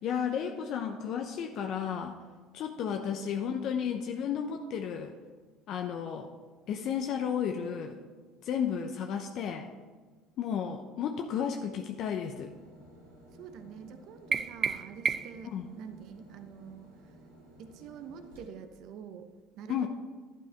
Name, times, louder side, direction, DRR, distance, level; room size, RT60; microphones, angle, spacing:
voice 1, 0.0-2.2 2.5-5.1 5.7-6.3 6.7-8.0 8.4-9.7 10.4-12.5 15.5-15.7 19.7-19.9, left 8 dB, 60° left, 4 dB, 0.7 m, -33 dB
voice 2, 2.8-3.2 13.3-17.2 17.6-19.3 19.6-19.9, right 7 dB, 65° right, 8 dB, 1.0 m, -47 dB
sound 1, 12.2-18.5, equal, 90° right, 3.3 m, -55 dB
sound 2, 14.3-15.5, right 6 dB, 35° right, 0.4 m, -31 dB
11.5 x 9.2 x 4.6 m, 1.4 s
hypercardioid pair, 75°, 0 cm